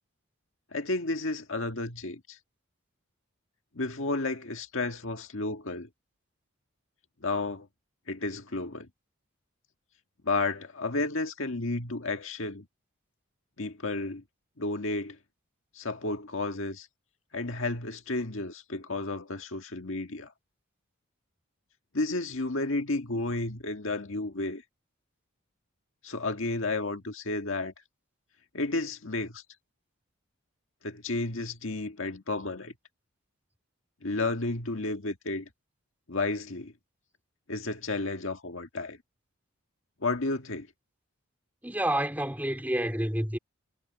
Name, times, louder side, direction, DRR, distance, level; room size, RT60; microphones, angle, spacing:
voice 1, 0.7-2.4 3.7-5.9 7.2-7.7 8.1-8.9 10.2-12.6 13.6-14.2 14.6-15.2 15.7-16.9 17.3-20.3 21.9-24.6 26.0-27.7 28.5-29.4 30.8-32.7 34.0-35.5 36.1-36.7 37.5-39.0 40.0-40.7, left 2 dB, 65° left, 1.8 m, -32 dB
voice 2, 41.6-43.4, right 1 dB, 10° right, 3.5 m, -29 dB
head